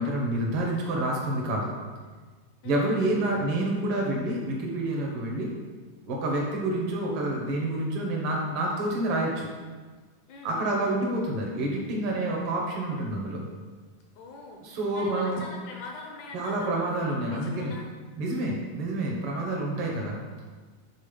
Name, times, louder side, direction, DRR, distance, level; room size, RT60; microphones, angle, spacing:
voice 1, 0.0-1.7 2.6-5.5 6.1-9.5 10.4-13.4 14.6-15.4 16.3-17.8 18.2-20.2, right 1 dB, 65° right, -2 dB, 1.4 m, -28 dB
voice 2, 2.6-3.1 10.3-11.0 14.2-16.9 17.3-17.9, left 3 dB, 80° left, 1 dB, 1.8 m, -44 dB
7.6 x 3.9 x 5.3 m, 1.4 s
omnidirectional pair, 4.2 m